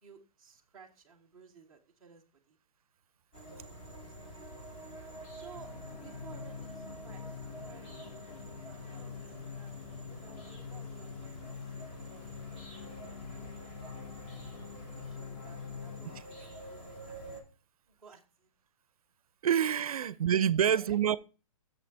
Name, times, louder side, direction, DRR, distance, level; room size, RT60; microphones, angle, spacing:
voice 1, 0.0-2.6 3.3-4.3 5.3-8.1 8.4-9.7 10.0-13.9 14.2-14.7 15.0-16.4 16.7-17.2 17.9-18.5 20.0-20.2 20.7-21.2, right 5 dB, ahead, 0.5 m, -57 dB
sound 1, 3.3-17.4, right 1 dB, 20° left, 1.1 m, -48 dB
sound 2, 5.5-16.2, left 7 dB, 85° left, 0.5 m, -45 dB
voice 2, 19.4-21.2, right 9 dB, 80° right, 0.5 m, -27 dB
6.9 x 5.9 x 4.4 m
hypercardioid pair, 180°, 18 cm